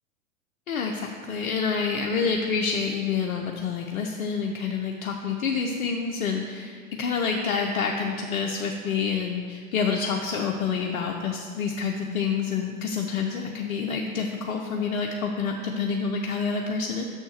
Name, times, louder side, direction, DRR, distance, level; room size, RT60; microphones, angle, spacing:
voice 1, 0.7-17.0, left 5 dB, 65° left, 2 dB, 0.7 m, -28 dB
6.4 x 4.5 x 6.4 m, 2.1 s
hypercardioid pair, 110°, 45 cm